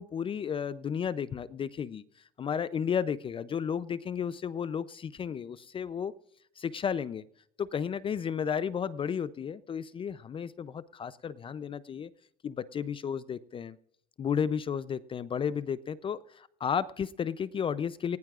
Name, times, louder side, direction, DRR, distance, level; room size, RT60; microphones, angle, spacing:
voice 1, 0.0-2.0 2.4-6.1 6.6-7.2 7.6-12.1 12.4-13.8 14.2-18.2, left 7 dB, 25° left, 16 dB, 0.5 m, -33 dB
19.0 x 16.5 x 2.4 m, 0.67 s
supercardioid pair, 115°, 20 cm